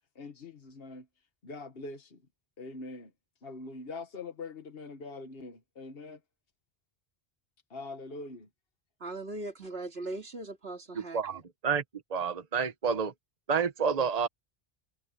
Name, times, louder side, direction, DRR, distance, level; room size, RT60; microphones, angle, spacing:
voice 1, 0.1-1.1 1.4-2.2 2.6-3.1 3.4-6.2 7.7-8.4, left 3 dB, 70° left, 1.6 m, -43 dB
voice 2, 9.0-11.4, right 2 dB, 80° right, 2.8 m, -39 dB
voice 3, 11.0-11.8 12.1-13.1 13.5-14.3, right 6 dB, 40° right, 1.2 m, -29 dB
omnidirectional pair, 1.0 m